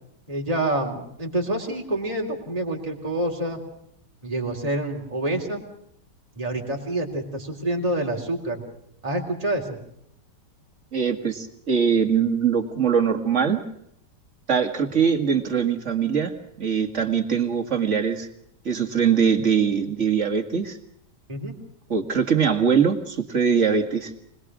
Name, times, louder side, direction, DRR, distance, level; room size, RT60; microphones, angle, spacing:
voice 1, 0.3-3.6 4.2-5.6 6.4-8.6 9.0-9.8 21.3-21.5, right 1 dB, 20° right, 0 dB, 3.4 m, -27 dB
voice 2, 10.9-13.6 14.5-18.3 18.6-20.8 21.9-24.1, right 6 dB, 45° right, 6 dB, 2.3 m, -22 dB
25.5 x 20.0 x 6.2 m, 0.73 s
omnidirectional pair, 1.8 m